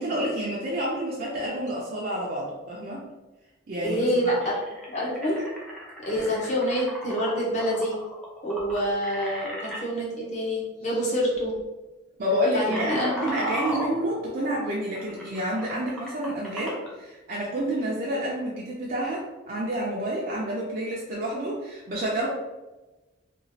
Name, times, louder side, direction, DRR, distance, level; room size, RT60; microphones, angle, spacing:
voice 1, 0.0-3.0 3.7-4.0 4.2-4.3 12.2-22.3, equal, 45° right, -5 dB, 0.4 m, -29 dB
voice 2, 3.8-4.6 4.9-5.4 6.0-7.9 8.4-11.6 12.5-13.3, equal, 35° left, -4 dB, 0.7 m, -27 dB
sound 1, 4.4-9.8 10.8-11.0 11.3-11.6 12.1-16.9, equal, 5° left, 0.6 m, -36 dB
2.9 x 2.4 x 2.7 m, 1.1 s
head